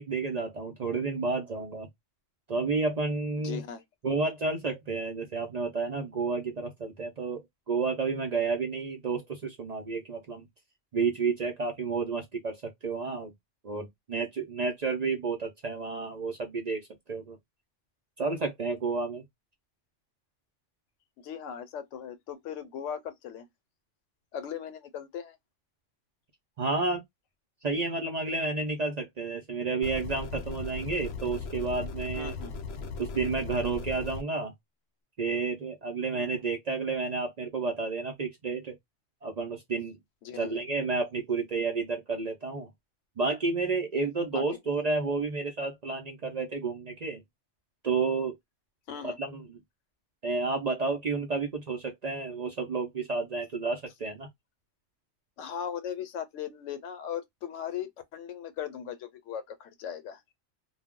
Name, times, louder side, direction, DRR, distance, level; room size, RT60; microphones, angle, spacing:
voice 1, 0.0-1.9 2.5-3.6 4.0-10.5 10.9-13.3 13.6-16.8 17.1-17.4 18.2-19.2 26.6-27.0 27.6-32.3 33.0-34.5 35.2-38.8 39.2-40.0 40.3-42.7 43.2-47.2 47.8-48.4 49.0-49.6 50.2-54.3, right 4 dB, 50° right, 0.5 m, -31 dB
voice 2, 3.4-3.8 21.2-23.5 24.3-25.4 32.2-32.5 36.1-36.4 40.2-40.6 44.3-44.4 48.9-49.2 55.4-60.2, left 8 dB, 85° left, 1.0 m, -38 dB
sound 1, 29.8-34.2, left 4 dB, 65° left, 0.8 m, -38 dB
2.2 x 2.0 x 3.5 m
omnidirectional pair, 1.2 m